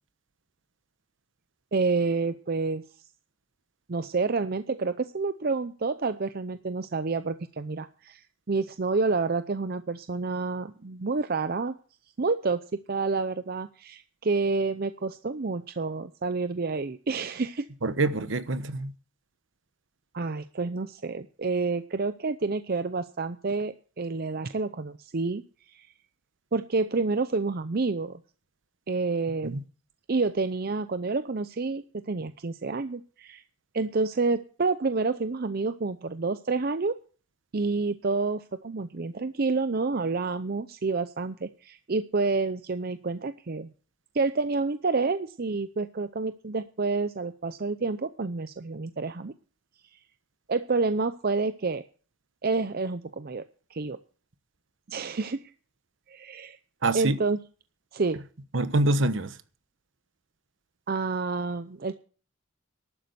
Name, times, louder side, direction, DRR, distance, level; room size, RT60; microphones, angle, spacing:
voice 1, 1.7-2.8 3.9-11.8 12.2-12.6 12.9-17.7 20.1-25.4 25.7-25.9 26.5-28.2 28.9-29.6 30.1-33.4 33.7-37.0 37.5-43.7 44.1-49.3 50.5-51.8 52.4-53.4 53.7-54.0 54.9-55.5 56.1-56.6 56.9-57.4 57.9-58.2 60.9-61.9, right 3 dB, 50° right, 0.6 m, -29 dB
voice 2, 17.8-18.9 29.4-29.6 56.8-57.2 58.5-59.4, right 2 dB, 70° right, 1.1 m, -25 dB
12.0 x 8.7 x 8.0 m
head